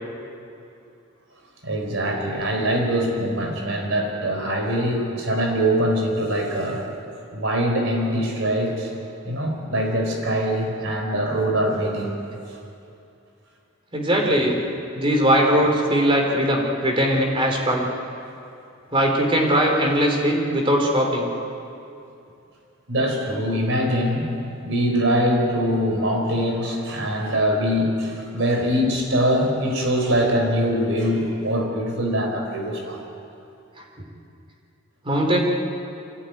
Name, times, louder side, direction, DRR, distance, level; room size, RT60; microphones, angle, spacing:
voice 1, 1.6-6.8 7.3-8.9 9.2-12.2 22.9-24.3 24.6-33.0, equal, 70° right, 2 dB, 4.6 m, -23 dB
voice 2, 13.9-14.6 14.9-17.9 18.9-21.3 35.0-35.4, equal, 25° right, 0 dB, 3.7 m, -20 dB
24.5 x 16.5 x 9.4 m, 2.6 s
head